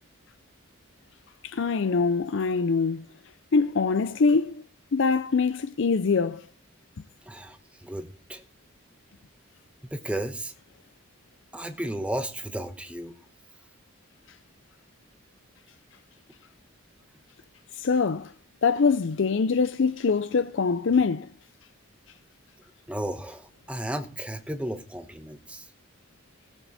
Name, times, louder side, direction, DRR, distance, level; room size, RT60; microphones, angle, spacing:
voice 1, 1.4-3.1 3.5-4.6 4.9-6.5 17.7-18.3 18.6-21.3, left 4 dB, 60° left, 0.5 m, -24 dB
voice 2, 7.3-7.6 7.8-8.4 9.9-10.5 11.5-13.1 22.9-25.7, right 1 dB, 5° right, 0.9 m, -34 dB
18.0 x 7.3 x 4.1 m
head